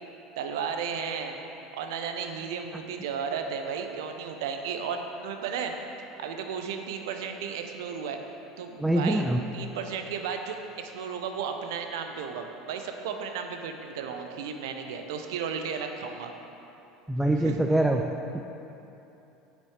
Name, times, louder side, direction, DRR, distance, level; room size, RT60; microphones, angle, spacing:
voice 1, 0.4-1.4 1.7-5.7 6.2-8.2 8.6-9.3 9.5-16.3 17.4-17.6, right 6 dB, 65° right, 5 dB, 0.6 m, -34 dB
voice 2, 8.8-9.4 17.1-18.1, right 1 dB, 5° right, 3 dB, 0.4 m, -24 dB
8.5 x 7.2 x 3.2 m, 3.0 s
figure-of-eight pair, 70°, 2 cm